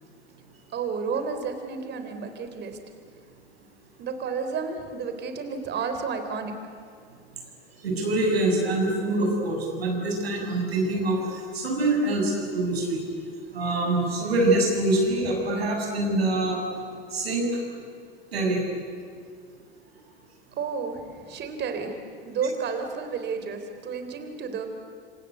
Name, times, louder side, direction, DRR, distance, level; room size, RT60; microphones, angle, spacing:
voice 1, 0.7-2.8 4.0-6.6 20.6-22.0 22.2-24.7, right 5 dB, 35° right, 7 dB, 3.9 m, -31 dB
voice 2, 7.8-13.0 13.5-16.6 17.1-17.5 18.3-18.6, right 2 dB, 85° right, 1 dB, 7.6 m, -25 dB
27.5 x 25.5 x 8.3 m, 2.1 s
hypercardioid pair, 95°, 30 cm